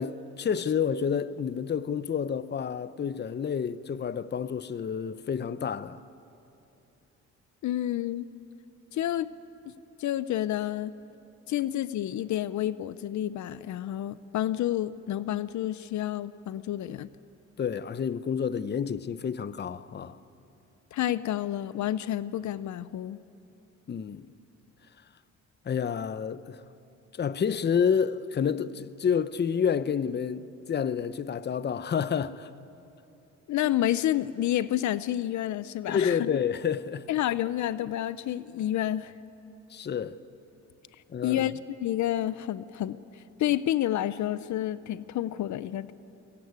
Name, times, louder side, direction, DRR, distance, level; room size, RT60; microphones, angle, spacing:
voice 1, 0.0-6.0 17.6-20.2 23.9-24.3 25.6-26.6 27.1-32.5 35.9-37.1 39.7-40.2 41.1-41.5, left 7 dB, 35° left, 0.8 m, -29 dB
voice 2, 7.6-8.3 8.9-9.3 9.6-9.7 10.0-10.9 11.5-17.1 20.9-23.2 33.5-36.3 37.1-39.1 41.2-41.5 41.8-45.9, left 12 dB, 70° left, 0.7 m, -29 dB
23.5 x 20.5 x 9.5 m
cardioid pair, 90°, 30 cm